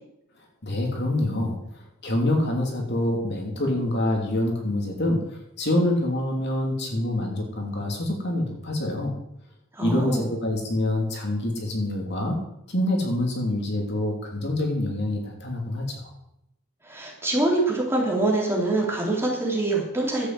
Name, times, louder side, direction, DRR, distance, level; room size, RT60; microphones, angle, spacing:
voice 1, 0.6-9.1 9.8-12.4 12.7-16.1, left 1 dB, 50° left, 1 dB, 3.0 m, -26 dB
voice 2, 9.7-10.2 16.8-20.3, right 2 dB, 10° right, -2 dB, 3.6 m, -24 dB
12.0 x 8.7 x 7.8 m, 0.83 s
head